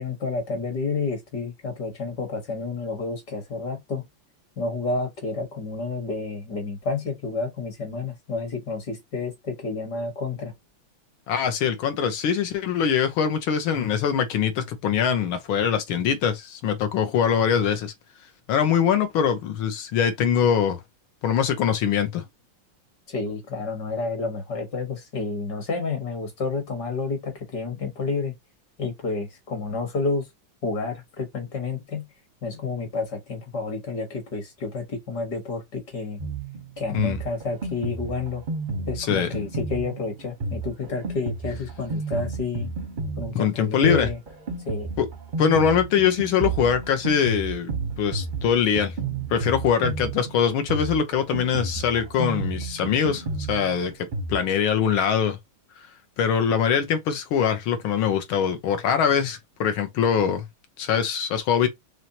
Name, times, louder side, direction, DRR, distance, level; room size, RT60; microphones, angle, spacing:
voice 1, 0.0-4.0 4.6-10.5 23.1-28.3 28.8-30.3 30.6-32.1 32.4-36.2 36.8-38.4 38.9-42.7 43.2-44.2 44.7-44.9, left 4 dB, 55° left, 2.0 m, -30 dB
voice 2, 11.3-17.9 18.5-20.8 21.2-22.2 36.9-37.2 39.0-39.3 43.3-44.1 45.0-45.1 45.4-47.7 48.0-48.9 49.3-55.4 56.2-60.4 60.8-61.7, left 7 dB, 80° left, 1.6 m, -23 dB
Drum kit, 36.2-54.4, right 3 dB, 45° right, 0.6 m, -32 dB
4.4 x 3.3 x 2.8 m
omnidirectional pair, 2.2 m